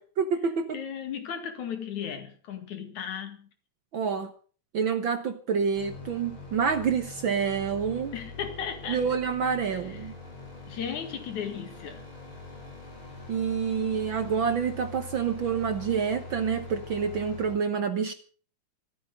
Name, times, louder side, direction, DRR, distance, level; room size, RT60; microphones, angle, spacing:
voice 1, 0.0-0.8 3.9-4.3 4.7-8.1 8.9-10.2 13.3-18.1, right 6 dB, 55° right, 9 dB, 1.5 m, -28 dB
voice 2, 0.7-3.5 8.1-9.0 9.9-10.1 10.7-12.0, left 8 dB, 80° left, 7 dB, 3.5 m, -35 dB
sound 1, 5.7-17.6, left 3 dB, 45° left, 5.5 m, -43 dB
14.0 x 13.0 x 6.6 m, 0.42 s
omnidirectional pair, 3.3 m